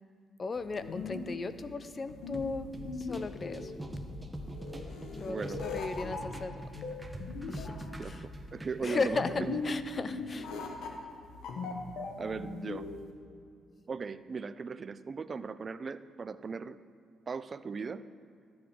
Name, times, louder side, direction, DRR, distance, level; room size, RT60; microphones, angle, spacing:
voice 1, 0.4-2.7 3.0-3.7 5.1-6.7 7.5-8.2 8.8-10.5, left 3 dB, 35° left, 13 dB, 0.5 m, -36 dB
sound 1, 0.6-13.1, left 4 dB, 80° left, 1.1 m, -39 dB
sound 2, 2.3-8.7, equal, 5° right, 1.0 m, -43 dB
voice 2, 5.2-5.6 8.0-9.6 12.2-12.9 13.9-16.8 17.3-18.1, right 5 dB, 40° right, 14 dB, 0.3 m, -38 dB
13.5 x 8.7 x 3.7 m, 2.3 s
cardioid pair, 90°, 0 cm